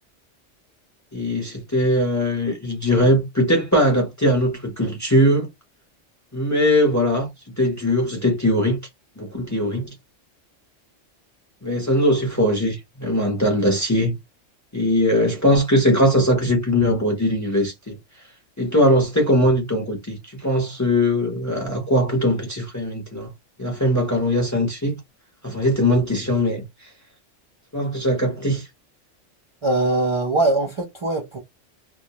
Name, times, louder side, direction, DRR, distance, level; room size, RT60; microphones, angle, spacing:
voice 1, 1.1-5.5 6.3-8.8 9.2-9.9 11.6-14.2 14.7-18.0 18.6-23.3 23.6-25.0 25.4-26.6 27.7-28.7, equal, 20° left, 0.5 m, -20 dB
voice 2, 29.6-31.4, right 2 dB, 45° right, 0.4 m, -21 dB
2.2 x 2.1 x 2.8 m
omnidirectional pair, 1.3 m